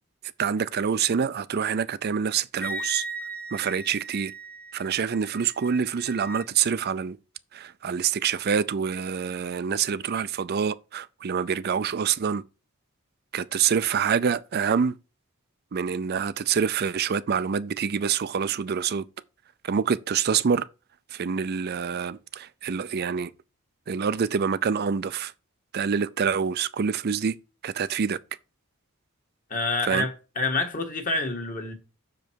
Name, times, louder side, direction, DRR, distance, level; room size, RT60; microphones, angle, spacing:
voice 1, 0.4-3.0 3.5-4.3 4.7-7.2 7.5-12.4 13.3-15.0 15.7-19.1 19.6-20.6 21.1-23.3 23.9-25.3 25.7-27.4 27.6-28.2 29.8-30.1, right 7 dB, 45° right, 0.4 m, -26 dB
Wind instrument woodwind instrument, 2.6-6.5, right 2 dB, 5° left, 0.5 m, -37 dB
voice 2, 29.5-31.7, left 2 dB, 40° left, 1.6 m, -27 dB
6.6 x 5.1 x 4.5 m
head